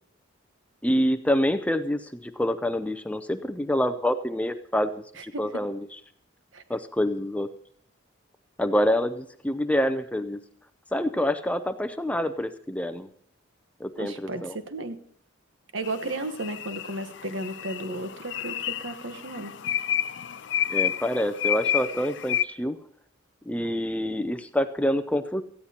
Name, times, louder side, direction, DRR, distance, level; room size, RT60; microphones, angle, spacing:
voice 1, 0.8-5.8 6.7-7.5 8.6-10.4 10.9-13.1 13.8-14.6 20.7-22.8 23.5-25.4, equal, 5° left, 10 dB, 0.5 m, -26 dB
voice 2, 5.2-5.6 6.5-6.6 14.0-15.0 15.7-19.5, right 2 dB, 65° right, 9 dB, 1.2 m, -34 dB
sound 1, 15.8-22.4, left 10 dB, 55° left, 0.5 m, -30 dB
18.0 x 14.5 x 2.9 m, 0.65 s
head